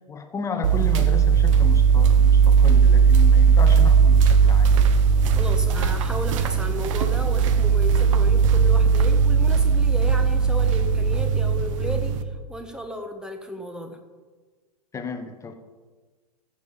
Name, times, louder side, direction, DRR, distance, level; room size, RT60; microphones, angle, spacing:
voice 1, 0.0-4.7 14.9-15.5, left 5 dB, 15° left, 7 dB, 1.2 m, -33 dB
sound 1, 0.6-12.2, right 6 dB, 50° right, 1.0 m, -18 dB
voice 2, 5.3-12.1 12.5-14.0, left 1 dB, 5° right, 6 dB, 1.3 m, -34 dB
15.5 x 7.2 x 5.2 m, 1.4 s
figure-of-eight pair, 105°, 21 cm